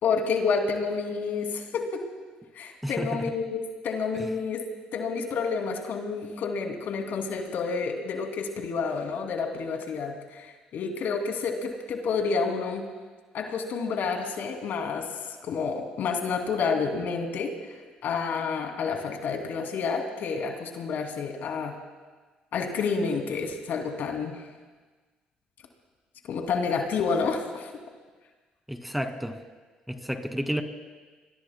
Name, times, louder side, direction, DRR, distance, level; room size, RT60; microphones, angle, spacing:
voice 1, 0.0-2.0 2.6-4.6 4.9-12.8 13.3-15.1 15.4-17.5 18.0-21.7 22.5-24.4 26.3-27.7, left 5 dB, 65° left, 3 dB, 2.6 m, -29 dB
voice 2, 2.8-3.3 28.7-29.4 29.9-30.6, equal, ahead, 6 dB, 2.2 m, -31 dB
27.5 x 22.0 x 2.2 m, 1.4 s
hypercardioid pair, 55°, 4 cm